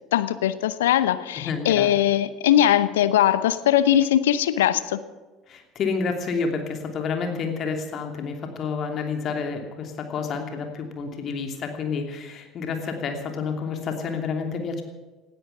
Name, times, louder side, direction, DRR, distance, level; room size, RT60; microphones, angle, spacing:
voice 1, 0.1-5.0, left 11 dB, 70° left, 15 dB, 0.8 m, -20 dB
voice 2, 1.3-1.9 5.5-14.8, left 5 dB, 40° left, 4 dB, 2.9 m, -29 dB
18.5 x 13.0 x 5.9 m, 1.2 s
figure-of-eight pair, 65°, 0 cm